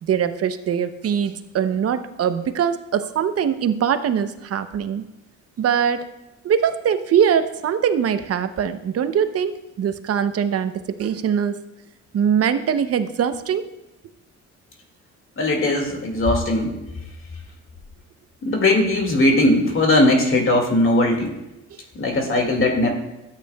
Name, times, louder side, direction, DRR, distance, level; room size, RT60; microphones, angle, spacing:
voice 1, 0.0-5.1 5.6-6.1 6.4-11.6 12.1-13.7 21.7-21.8, right 8 dB, 50° right, 10 dB, 0.7 m, -22 dB
voice 2, 15.4-16.7 18.4-21.3 21.9-22.9, left 1 dB, 45° left, 2 dB, 2.1 m, -19 dB
13.0 x 8.3 x 2.3 m, 0.95 s
cardioid pair, 90°, 30 cm